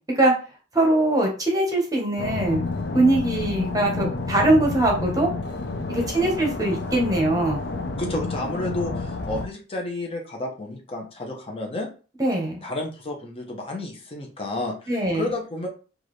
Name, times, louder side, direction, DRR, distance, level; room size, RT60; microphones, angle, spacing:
voice 1, 0.7-2.7 2.9-5.3 5.9-7.6 12.2-12.6 14.9-15.3, right 1 dB, 20° right, 0 dB, 1.1 m, -21 dB
sound 1, 2.2-9.5, left 3 dB, 60° left, 0.6 m, -30 dB
voice 2, 5.9-6.3 8.0-11.9 12.6-15.7, left 2 dB, 30° left, 1 dB, 0.9 m, -31 dB
4.7 x 2.6 x 3.2 m, 0.36 s
head